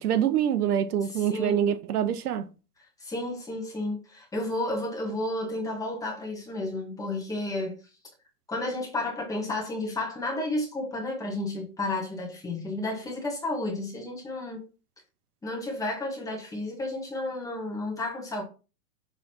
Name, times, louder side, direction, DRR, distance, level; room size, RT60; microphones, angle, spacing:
voice 1, 0.0-2.4, right 9 dB, 70° right, 0.9 m, -25 dB
voice 2, 1.1-1.6 3.0-7.8 8.5-14.6 15.4-18.4, left 2 dB, 5° left, 1.6 m, -32 dB
6.7 x 3.9 x 4.3 m
hypercardioid pair, 150°, 46 cm